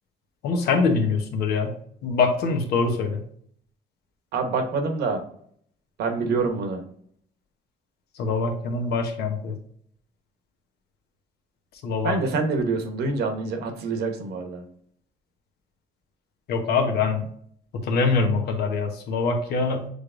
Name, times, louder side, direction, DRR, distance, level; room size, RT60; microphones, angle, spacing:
voice 1, 0.4-1.7 2.0-3.2 8.2-9.6 11.8-12.1 16.5-17.2 17.8-19.9, left 4 dB, 75° left, 4 dB, 1.0 m, -24 dB
voice 2, 4.3-5.2 6.0-6.8 12.0-14.6, right 4 dB, 75° right, 5 dB, 1.0 m, -26 dB
6.5 x 3.3 x 2.4 m, 0.62 s
cardioid pair, 110°, 17 cm